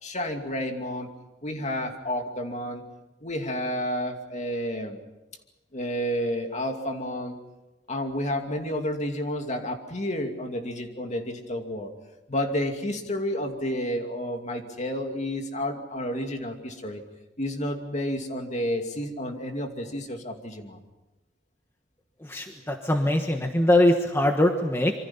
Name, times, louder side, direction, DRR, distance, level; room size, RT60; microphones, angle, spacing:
voice 1, 0.0-1.1 1.4-2.8 3.2-5.0 5.7-7.4 7.9-11.9 12.3-17.0 17.4-20.8, equal, 40° left, 4 dB, 2.6 m, -30 dB
voice 2, 22.3-24.9, left 1 dB, 15° left, 4 dB, 1.3 m, -22 dB
26.5 x 24.5 x 5.7 m, 1.0 s
head